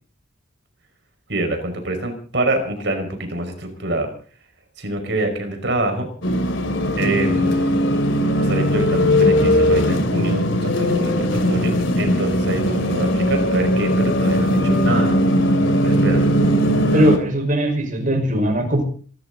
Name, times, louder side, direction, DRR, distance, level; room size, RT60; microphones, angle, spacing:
voice 1, 1.3-4.1 4.8-6.1 7.0-7.7 8.4-15.2 15.8-16.3, right 1 dB, 60° right, 5 dB, 5.4 m, -25 dB
sound 1, 6.2-17.2, equal, 75° left, 3.0 m, -19 dB
voice 2, 7.0-7.4 16.9-18.8, right 1 dB, 40° right, 4 dB, 5.1 m, -20 dB
26.5 x 13.5 x 4.0 m, 0.43 s
head